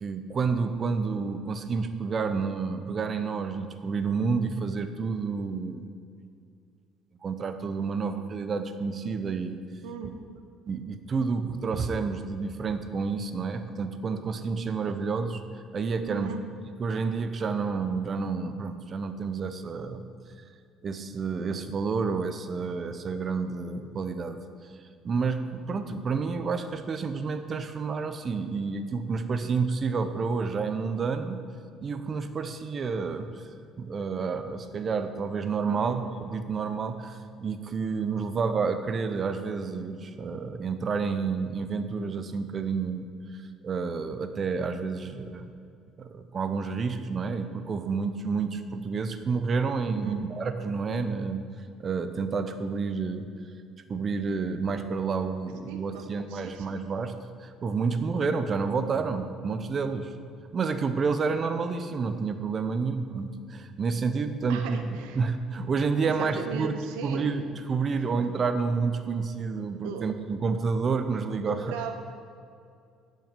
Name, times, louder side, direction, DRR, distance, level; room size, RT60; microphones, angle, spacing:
voice 1, 0.0-5.9 7.2-9.6 10.0-10.1 10.7-15.4 15.7-16.4 16.8-20.1 20.8-24.4 25.0-31.4 31.8-33.4 33.8-45.5 46.0-51.4 51.8-53.3 53.9-60.1 60.5-64.9 65.1-71.6, right 5 dB, 40° right, 9 dB, 0.7 m, -29 dB
voice 2, 16.1-16.4 35.7-36.0 49.9-50.2 55.7-56.7 64.5-65.2 66.0-67.3 69.8-70.1 71.5-72.0, right 6 dB, 85° right, 6 dB, 0.8 m, -37 dB
10.5 x 5.6 x 5.2 m, 2.3 s
supercardioid pair, 80°, 0 cm